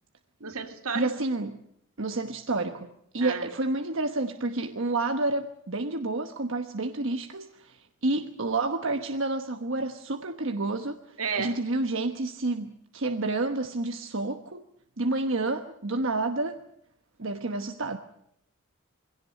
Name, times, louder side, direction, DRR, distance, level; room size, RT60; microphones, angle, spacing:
voice 1, 0.4-1.1 3.2-3.5 11.2-11.6, right 5 dB, 80° right, 7 dB, 2.3 m, -32 dB
voice 2, 0.9-1.5 2.0-14.6 15.0-16.6 17.2-18.0, right 2 dB, 60° right, 6 dB, 1.1 m, -29 dB
22.0 x 17.0 x 9.4 m, 0.75 s
head